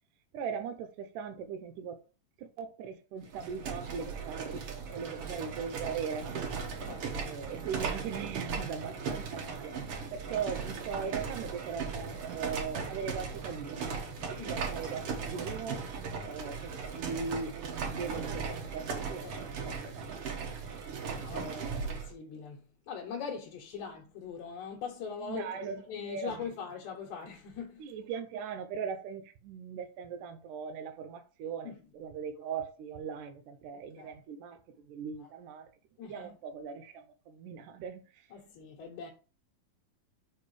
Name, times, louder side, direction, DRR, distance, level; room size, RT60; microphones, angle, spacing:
voice 1, 0.3-2.0 2.4-6.4 7.2-9.7 10.1-14.0 14.3-15.9 16.2-20.5 21.3-21.8 25.2-26.4 27.8-35.7 36.0-38.0, right 6 dB, 75° right, 2.2 m, -39 dB
sound 1, 3.2-22.1, right 5 dB, 60° right, 1.7 m, -38 dB
voice 2, 6.8-7.4 14.4-14.5 19.2-19.4 21.2-27.9 31.6-31.8 33.7-34.2 35.2-35.3 36.0-36.3 38.3-39.1, left 6 dB, 65° left, 2.2 m, -42 dB
5.3 x 4.9 x 4.8 m
omnidirectional pair, 3.9 m